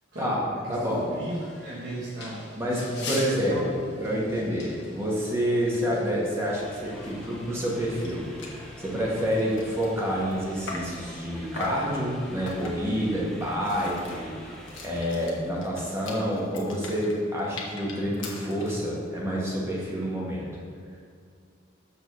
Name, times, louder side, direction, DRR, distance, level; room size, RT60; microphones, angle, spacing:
voice 1, 0.1-3.2 3.5-3.8, right 1 dB, 60° right, -8 dB, 1.2 m, -36 dB
sound 1, 0.7-13.2, left 3 dB, 60° left, 1.4 m, -45 dB
voice 2, 0.7-1.1 2.5-14.6 14.8-20.4, equal, 15° right, -5 dB, 1.4 m, -28 dB
sound 2, 6.5-15.1, left 1 dB, ahead, 0.6 m, -46 dB
sound 3, 7.7-7.8 8.0-8.1 8.4-8.6 9.1-11.0 11.6-11.9 12.5-12.9 13.4-18.8, left 3 dB, 80° left, 1.1 m, -40 dB
6.9 x 3.8 x 6.2 m, 2.2 s
head